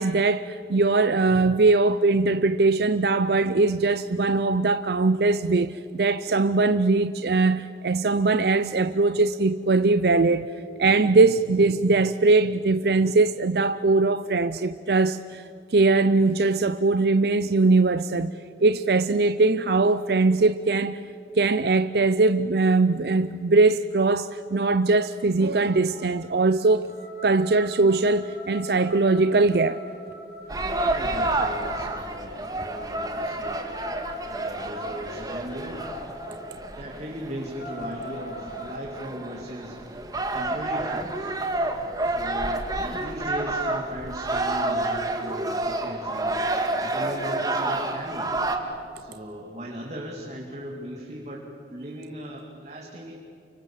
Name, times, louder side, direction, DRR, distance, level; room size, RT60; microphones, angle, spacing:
voice 1, 0.0-10.5 10.8-15.4 15.7-18.3 18.6-21.0 21.4-26.9 27.2-29.8, right 3 dB, 60° right, 0.5 m, -21 dB
sound 1, 24.5-24.6 24.9-25.2 25.6-32.5 33.8-36.6 37.0-37.1 37.4-38.8, left 1 dB, 65° left, 5.1 m, -42 dB
sound 2, 30.5-48.6, right 2 dB, 20° right, 1.9 m, -29 dB
voice 2, 30.8-33.7 34.3-35.9 36.8-39.8 40.3-41.3 42.0-46.4 46.8-48.3 48.9-53.1, equal, 40° right, 2.6 m, -38 dB
29.0 x 24.5 x 7.4 m
head